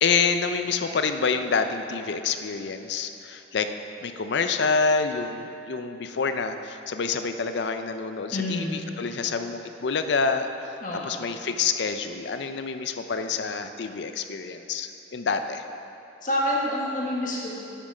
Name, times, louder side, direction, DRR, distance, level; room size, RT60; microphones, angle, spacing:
voice 1, 0.0-3.7 4.0-10.7 11.0-15.6, left 5 dB, 65° left, 8 dB, 0.5 m, -27 dB
voice 2, 8.3-8.9 10.8-11.2 16.2-17.6, left 1 dB, 45° left, -4 dB, 1.5 m, -28 dB
9.0 x 7.4 x 4.9 m, 2.8 s
head